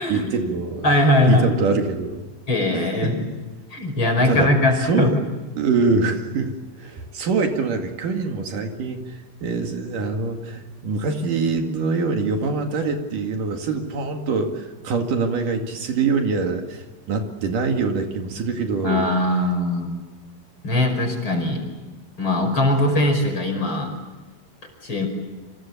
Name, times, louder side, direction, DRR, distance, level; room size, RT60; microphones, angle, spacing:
voice 1, 0.0-0.9 1.3-2.2 2.7-3.1 4.3-4.5 4.8-5.1 5.6-6.5 6.8-16.8 17.1-19.1, right 4 dB, 70° right, 4 dB, 3.7 m, -24 dB
voice 2, 0.8-1.5 2.5-3.1 3.7-5.1 18.8-20.0 20.6-21.6 22.2-23.9 24.8-25.1, left 1 dB, 35° left, 4 dB, 6.0 m, -20 dB
29.5 x 26.0 x 7.3 m, 1.2 s
omnidirectional pair, 4.0 m